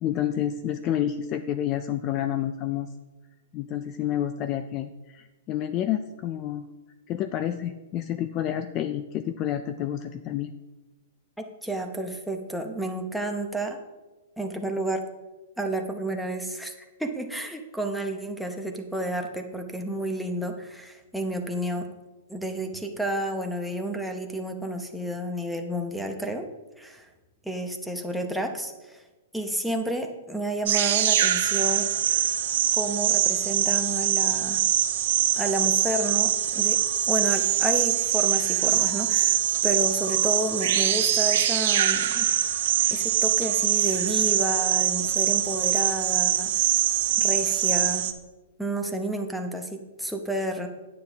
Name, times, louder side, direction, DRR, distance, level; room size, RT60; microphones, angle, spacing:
voice 1, 0.0-2.9 3.5-6.7 7.1-10.5, left 11 dB, 25° left, 10 dB, 0.3 m, -29 dB
voice 2, 11.4-13.8 14.4-15.0 15.6-16.7 17.0-21.9 22.3-26.4 26.8-27.1 27.4-29.0 29.3-31.9 32.7-34.6 35.4-36.8 37.1-42.3 42.9-46.5 47.2-48.0 48.6-50.7, right 1 dB, ahead, 4 dB, 0.8 m, -31 dB
sound 1, 30.7-48.1, right 10 dB, 55° right, 0.7 m, -23 dB
9.5 x 8.8 x 3.4 m, 1.2 s
hypercardioid pair, 165°, 0 cm